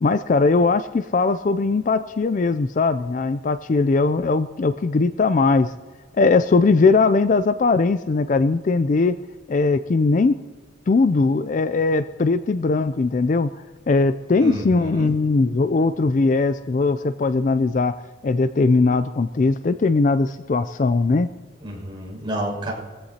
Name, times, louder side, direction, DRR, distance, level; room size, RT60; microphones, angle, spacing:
voice 1, 0.0-5.7 6.1-9.2 9.5-10.4 10.9-13.5 13.9-17.9 18.2-21.3, left 3 dB, 40° left, 12 dB, 0.3 m, -19 dB
voice 2, 14.4-15.1 21.6-22.7, right 1 dB, 25° right, -3 dB, 5.9 m, -29 dB
23.0 x 15.5 x 2.8 m, 1.4 s
head